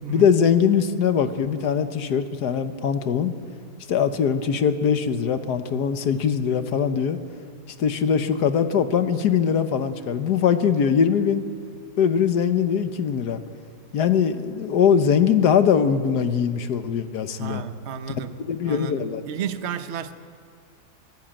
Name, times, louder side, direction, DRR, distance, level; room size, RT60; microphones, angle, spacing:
voice 1, 0.1-3.3 3.9-7.2 7.8-11.4 12.0-13.4 13.9-17.6 18.4-19.2, left 7 dB, 70° left, 10 dB, 1.6 m, -21 dB
voice 2, 17.4-18.3 18.6-20.1, right 7 dB, 50° right, 10 dB, 1.0 m, -32 dB
24.0 x 16.5 x 8.9 m, 2.1 s
omnidirectional pair, 1.8 m